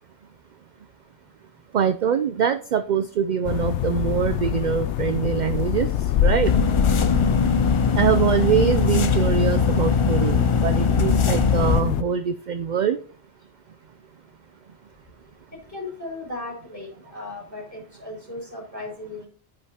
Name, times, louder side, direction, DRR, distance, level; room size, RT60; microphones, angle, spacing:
voice 1, 1.7-5.9 6.2-6.5 7.9-13.0, right 7 dB, 55° right, 11 dB, 0.6 m, -23 dB
sound 1, 3.4-12.0, left 10 dB, 85° left, 0.9 m, -25 dB
sound 2, 6.4-11.8, left 4 dB, 40° left, 0.4 m, -21 dB
voice 2, 15.7-19.3, left 2 dB, 15° left, 0 dB, 3.9 m, -36 dB
9.6 x 8.7 x 2.9 m, 0.40 s
omnidirectional pair, 1.1 m